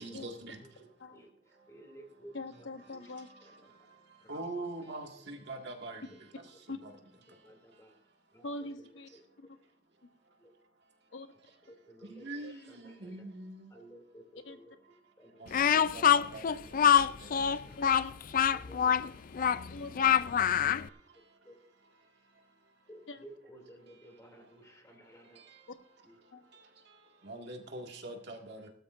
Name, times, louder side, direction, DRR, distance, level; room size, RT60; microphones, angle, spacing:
voice 1, 0.0-2.0 3.0-6.0 6.7-6.9 7.3-8.1 10.2-10.6 11.7-14.2 15.0-17.8 19.0-19.5 20.4-23.0 23.8-25.7 26.2-28.7, right 2 dB, 60° right, 2 dB, 2.0 m, -47 dB
voice 2, 1.7-2.3 2.6-3.0 3.4-3.5 4.2-4.4 5.6-5.7 6.1-6.4 7.4-7.9 8.3-8.4 10.4-10.5 11.9-13.2 13.7-14.7 15.2-15.8 16.5-16.9 17.3-17.9 18.5-19.8 20.4-20.7 21.4-21.5 22.9-25.4, right 1 dB, 15° left, 2 dB, 2.7 m, -55 dB
voice 3, 2.3-3.3 6.7-6.8 8.4-9.1 9.4-9.6 11.1-11.3 12.4-12.5 14.4-14.6 15.5-15.6 17.8-18.1 19.7-20.2 23.1-23.2 25.7-25.8 26.3-26.4, left 2 dB, 70° left, 8 dB, 1.0 m, -43 dB
Speech, 15.5-20.9, left 8 dB, 45° left, 0.4 m, -25 dB
18.5 x 12.5 x 2.6 m, 0.66 s
head